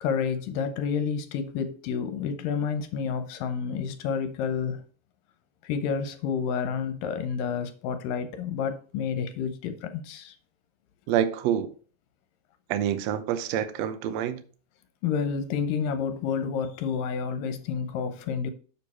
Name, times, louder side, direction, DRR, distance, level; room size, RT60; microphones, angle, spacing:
voice 1, 0.0-4.8 5.6-10.4 15.0-18.5, left 6 dB, 75° left, 2.4 m, -29 dB
voice 2, 11.1-11.7 12.7-14.4, right 10 dB, 80° right, 1.5 m, -27 dB
7.2 x 6.5 x 4.2 m
omnidirectional pair, 4.1 m